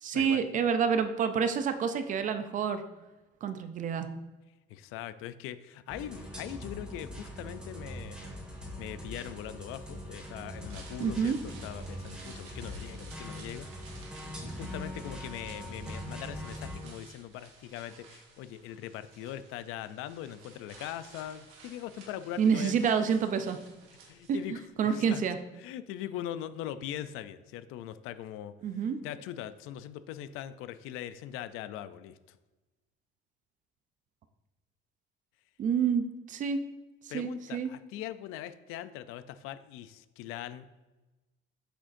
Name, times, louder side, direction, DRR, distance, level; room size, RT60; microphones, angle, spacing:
voice 1, 0.0-2.8 3.4-4.1 11.0-11.4 22.4-23.6 24.3-24.4 24.8-25.4 28.6-29.0 35.6-36.6 37.1-37.7, right 6 dB, 40° right, 9 dB, 0.5 m, -28 dB
voice 2, 4.7-8.2 8.8-13.7 14.4-22.9 24.1-25.2 25.6-28.5 29.0-32.4 37.1-40.6, left 11 dB, 85° left, 13 dB, 0.4 m, -41 dB
sound 1, 5.9-16.8, equal, 5° right, 1.7 m, -42 dB
sound 2, 10.6-24.7 25.0-25.1, right 4 dB, 80° right, 1.8 m, -54 dB
8.0 x 6.3 x 2.6 m, 1.1 s
cardioid pair, 165°, 21 cm